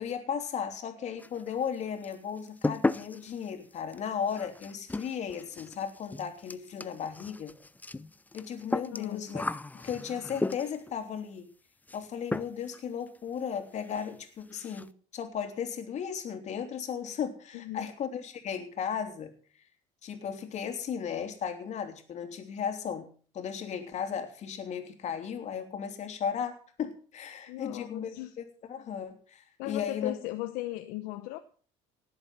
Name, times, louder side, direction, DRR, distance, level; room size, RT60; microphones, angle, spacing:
voice 1, 0.0-7.5 8.3-9.4 9.7-11.4 11.9-19.3 20.0-23.1 23.3-30.2, left 7 dB, 50° left, 3.2 m, -35 dB
sound 1, 1.2-1.8 2.0-10.9 11.9-12.1 12.3-12.8 13.1-13.2 13.5-13.6 13.9-14.1 14.4-14.9, left 2 dB, 10° left, 0.7 m, -35 dB
voice 2, 8.9-9.3 17.5-17.9 27.5-28.3 29.6-31.4, left 16 dB, 75° left, 1.0 m, -37 dB
18.5 x 8.0 x 5.9 m
supercardioid pair, 85°, 15 cm